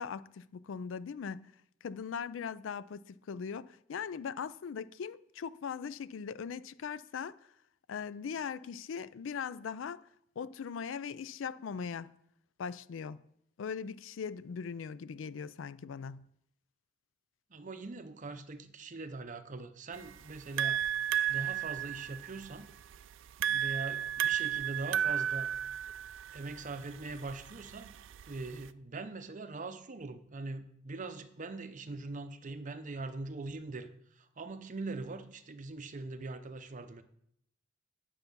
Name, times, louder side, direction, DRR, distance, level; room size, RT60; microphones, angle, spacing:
voice 1, 0.0-1.5 1.8-7.4 7.9-10.1 10.4-12.1 12.6-13.2 13.6-16.2, left 6 dB, 85° left, 0.4 m, -40 dB
voice 2, 17.5-20.8 21.3-22.7 23.5-25.5 26.3-27.9 28.3-33.9 34.2-37.0, right 3 dB, 40° right, 0.7 m, -42 dB
sound 1, 19.9-28.7, right 10 dB, 90° right, 0.4 m, -34 dB
9.2 x 7.0 x 5.3 m
head